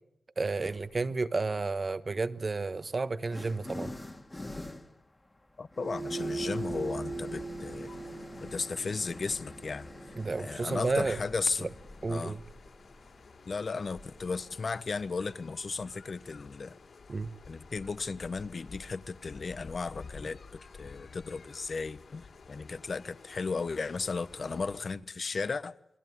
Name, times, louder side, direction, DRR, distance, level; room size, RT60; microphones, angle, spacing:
voice 1, 0.4-3.9 10.2-11.2 11.6-11.7 12.0-12.4 17.1-17.3, right 3 dB, 40° right, 1.2 m, -31 dB
sound 1, 0.6-1.1 2.1-15.5, left 1 dB, 20° left, 2.1 m, -46 dB
voice 2, 5.6-7.9 8.4-9.9 10.4-11.7 12.1-12.4 13.5-16.8 17.5-20.4 20.8-25.7, left 4 dB, 50° left, 1.1 m, -35 dB
sound 2, 5.7-14.2, right 3 dB, 55° right, 2.8 m, -42 dB
sound 3, 7.1-24.9, left 4 dB, 65° left, 5.0 m, -52 dB
28.5 x 22.0 x 9.6 m
wide cardioid pair, 125°, 0 cm